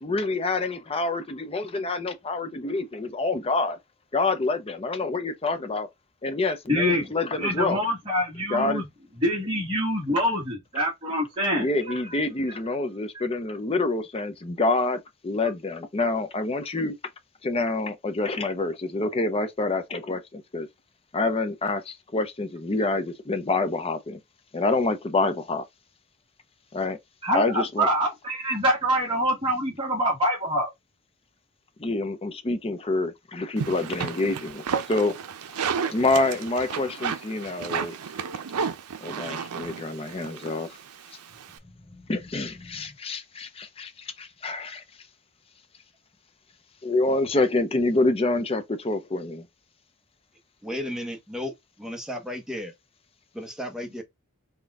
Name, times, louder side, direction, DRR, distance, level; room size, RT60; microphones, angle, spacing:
voice 1, 0.0-3.8 4.1-5.9 6.2-7.8 8.5-8.8 11.6-16.9 17.4-20.7 21.1-24.2 24.5-25.6 26.7-27.0 27.3-27.9 31.8-35.1 35.9-38.0 39.0-40.8 42.1-44.8 46.8-49.5, left 2 dB, 25° left, 0.6 m, -27 dB
voice 2, 6.7-7.1 7.4-8.8 9.2-12.0 27.2-30.7, equal, 20° right, 1.2 m, -25 dB
sound 1, 33.6-41.6, right 6 dB, 85° right, 0.5 m, -32 dB
voice 3, 50.6-51.5 51.8-52.7 53.3-54.0, left 1 dB, 5° right, 0.8 m, -33 dB
4.0 x 2.3 x 3.4 m
head